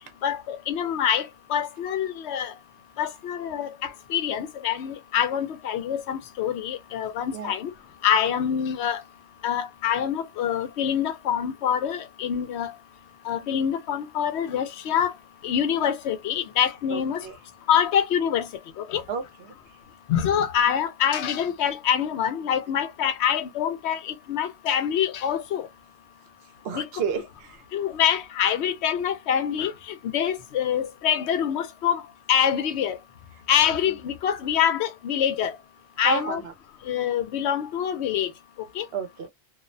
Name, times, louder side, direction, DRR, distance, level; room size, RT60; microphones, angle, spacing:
voice 1, 0.2-2.5 3.0-7.7 8.0-9.0 9.4-12.7 13.3-15.1 15.4-17.2 17.7-18.5 18.8-19.0 20.1-25.7 26.7-26.9 27.7-29.7 30.1-32.0 32.3-33.0 33.5-35.5 36.0-36.4 36.9-38.3 38.8-38.9, left 9 dB, 80° left, 0.8 m, -25 dB
voice 2, 16.9-17.4 19.1-19.2 26.6-27.6 36.0-36.5 38.9-39.3, right 5 dB, 70° right, 0.8 m, -30 dB
2.4 x 2.0 x 2.5 m
omnidirectional pair, 1.1 m